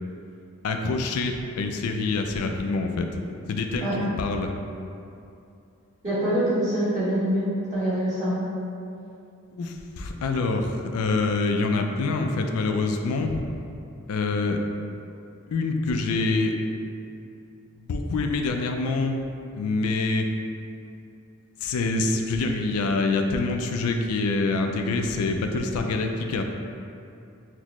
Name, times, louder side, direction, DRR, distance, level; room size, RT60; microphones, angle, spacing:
voice 1, 0.6-3.1 3.5-4.5 9.5-13.4 14.1-14.6 15.5-16.5 17.9-19.2 19.5-20.3 21.6-26.4, left 3 dB, 85° left, 4 dB, 0.4 m, -26 dB
voice 2, 6.0-8.5, right 1 dB, 35° right, -12 dB, 1.4 m, -25 dB
5.9 x 2.1 x 3.0 m, 2.6 s
head